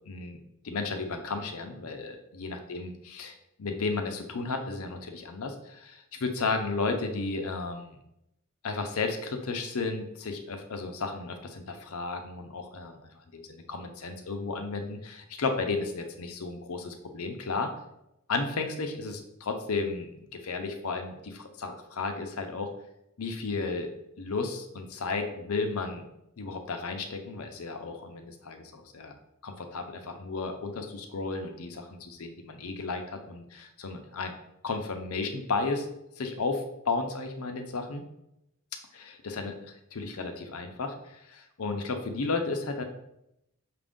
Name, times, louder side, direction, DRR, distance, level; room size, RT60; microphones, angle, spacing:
voice 1, 0.1-0.4 0.6-8.0 8.6-13.0 13.3-17.7 18.3-22.7 23.2-23.9 24.2-26.0 26.4-29.2 29.4-34.3 34.6-35.9 36.2-38.0 38.9-42.8, left 3 dB, 80° left, 5 dB, 0.6 m, -33 dB
5.9 x 2.5 x 3.6 m, 0.83 s
head